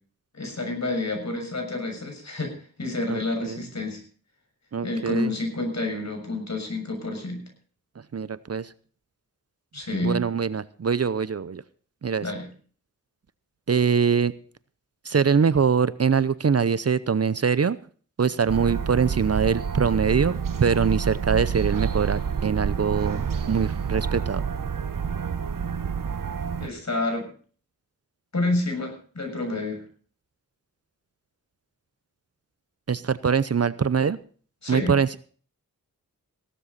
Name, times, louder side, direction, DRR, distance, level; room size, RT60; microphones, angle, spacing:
voice 1, 0.3-2.5 2.8-4.0 4.8-7.4 9.7-10.2 12.2-12.5 26.6-27.3 28.3-29.8 34.6-35.0, left 2 dB, 50° left, 4 dB, 6.7 m, -29 dB
voice 2, 3.1-3.6 4.7-5.3 8.1-8.7 10.0-11.6 12.0-12.2 13.7-14.3 15.0-17.8 18.2-24.4 32.9-34.2 34.7-35.2, right 6 dB, 45° right, 17 dB, 0.7 m, -23 dB
sound 1, 18.5-26.7, right 6 dB, 70° right, 1.2 m, -28 dB
16.5 x 12.5 x 4.1 m, 0.43 s
cardioid pair, 60°, 34 cm